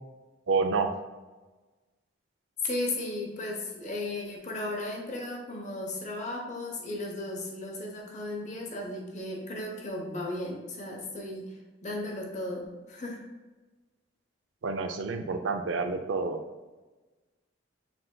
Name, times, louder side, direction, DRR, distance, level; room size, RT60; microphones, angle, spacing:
voice 1, 0.5-0.9 14.6-16.4, right 4 dB, 80° right, 6 dB, 0.5 m, -28 dB
voice 2, 2.6-11.6 11.8-13.2, left 2 dB, 35° left, 0 dB, 0.8 m, -35 dB
6.0 x 3.8 x 2.3 m, 1.2 s
head